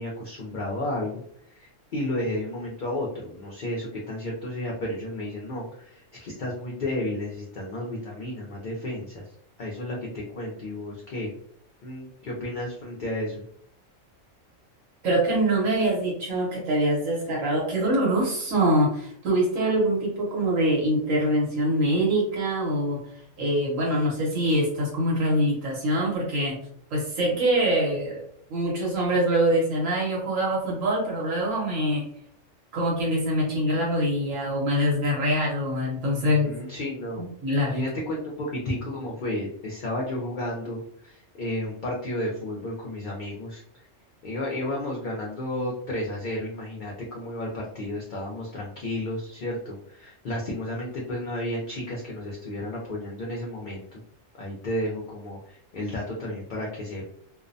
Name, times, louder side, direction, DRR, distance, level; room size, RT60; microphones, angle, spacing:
voice 1, 0.0-9.3 9.6-11.3 11.8-13.4 36.2-37.3 37.7-43.6 44.2-54.0 54.4-57.0, left 1 dB, 60° left, -3 dB, 0.5 m, -32 dB
voice 2, 15.0-23.0 23.4-26.6 26.9-28.2 28.5-32.0 32.7-36.5 37.2-37.7, right 1 dB, 85° right, -3 dB, 1.2 m, -24 dB
2.6 x 2.0 x 2.5 m, 0.66 s
omnidirectional pair, 1.3 m